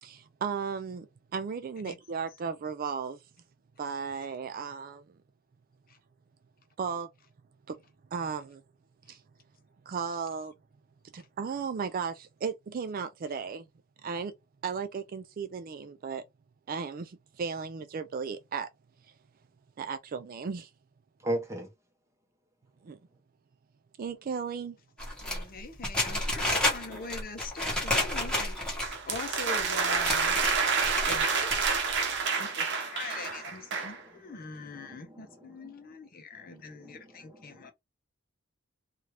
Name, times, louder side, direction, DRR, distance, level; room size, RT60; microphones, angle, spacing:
voice 1, 0.0-3.2 3.8-5.1 6.8-7.1 7.7-7.8 8.1-8.6 9.1-9.2 9.9-10.5 11.1-13.7 14.0-14.3 14.6-16.2 16.7-18.7 19.8-20.7 22.8-23.0 24.0-24.8, right 6 dB, 45° right, 0.4 m, -35 dB
voice 2, 21.2-21.7 34.9-35.1 35.6-35.7 36.8-37.0 37.5-37.7, right 1 dB, 15° right, 1.0 m, -34 dB
sound 1, 25.0-29.1 29.6-29.7 29.9-31.2 31.5-32.0, left 1 dB, 5° left, 1.2 m, -30 dB
voice 3, 25.2-28.6 29.0-30.4 31.1-31.5 32.2-37.7, left 3 dB, 45° left, 0.7 m, -43 dB
sound 2, 28.8-34.0, right 5 dB, 60° right, 0.8 m, -28 dB
2.8 x 2.4 x 3.2 m
head